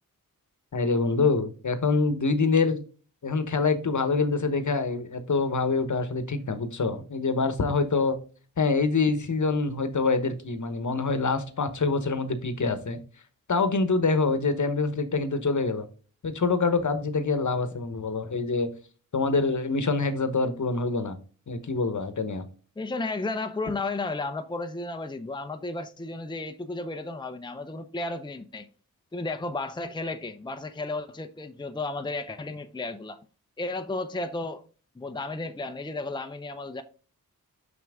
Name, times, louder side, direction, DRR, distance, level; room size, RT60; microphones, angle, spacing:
voice 1, 0.7-2.8 3.2-8.2 8.6-13.0 13.5-15.9 16.2-18.7 19.1-21.2 21.5-22.4, left 4 dB, 55° left, 1.1 m, -25 dB
voice 2, 22.8-28.7 29.1-33.2 33.6-34.6 35.0-36.8, left 2 dB, 10° left, 0.7 m, -33 dB
6.0 x 5.9 x 3.5 m
cardioid pair, 50°, 36 cm